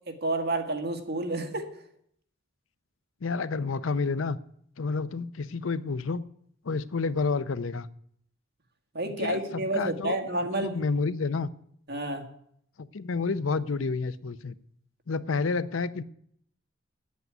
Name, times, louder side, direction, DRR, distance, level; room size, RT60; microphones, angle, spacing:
voice 1, 0.1-1.7 8.9-10.7 11.9-12.3, right 2 dB, 55° right, 5 dB, 1.8 m, -30 dB
voice 2, 3.2-4.4 4.8-6.2 6.6-7.9 9.2-10.2 10.6-11.5 12.8-14.5 15.1-16.0, left 4 dB, 90° left, 16 dB, 0.6 m, -29 dB
9.2 x 8.4 x 9.3 m, 0.68 s
head